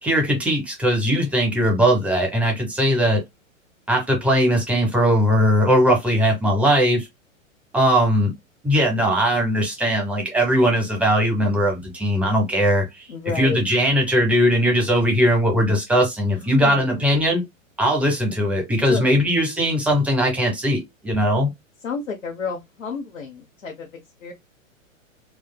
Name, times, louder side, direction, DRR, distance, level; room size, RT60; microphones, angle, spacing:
voice 1, 0.0-3.2 3.9-7.1 7.7-8.3 8.6-13.1 13.4-17.4 17.8-21.5, equal, 5° right, 1.1 m, -19 dB
voice 2, 13.1-13.6 16.3-17.1 18.9-19.3 21.8-24.3, left 5 dB, 75° left, 1.0 m, -31 dB
4.5 x 2.3 x 2.2 m
figure-of-eight pair, 100°, 40 cm